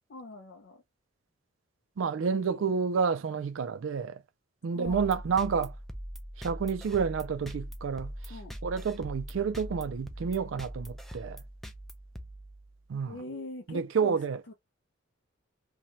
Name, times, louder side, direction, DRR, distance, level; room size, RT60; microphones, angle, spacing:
voice 1, 0.1-0.8 2.4-2.9 4.7-5.1 8.3-8.5 13.1-14.2 14.5-14.6, left 2 dB, 60° left, 0.5 m, -43 dB
voice 2, 2.0-4.2 4.6-5.8 6.4-11.4 12.9-13.2 13.7-14.5, right 6 dB, 80° right, 0.4 m, -30 dB
sound 1, 4.9-13.0, equal, ahead, 0.4 m, -42 dB
2.7 x 2.2 x 3.0 m
head